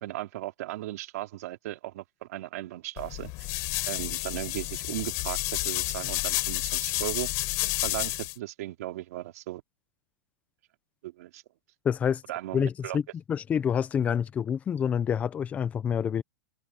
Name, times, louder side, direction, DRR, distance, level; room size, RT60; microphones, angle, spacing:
voice 1, 0.0-3.3 3.8-7.3 7.8-9.6 11.0-11.4 12.3-13.0, right 16 dB, 55° right, 2.9 m, -36 dB
sound 1, 3.0-8.3, left 25 dB, 35° left, 4.3 m, -30 dB
voice 2, 11.8-12.2 12.5-13.0 13.3-16.2, left 8 dB, 15° left, 0.8 m, -27 dB
supercardioid pair, 165°, 10 cm